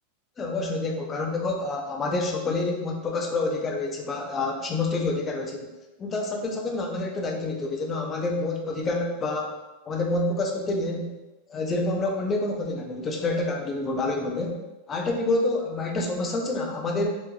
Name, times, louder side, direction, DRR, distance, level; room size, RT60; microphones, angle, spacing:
voice 1, 0.4-5.7 6.0-9.5 9.8-11.1 11.5-14.6 14.9-17.1, left 2 dB, 20° left, 1 dB, 0.6 m, -28 dB
3.6 x 3.0 x 2.3 m, 1.1 s
supercardioid pair, 135°, 0 cm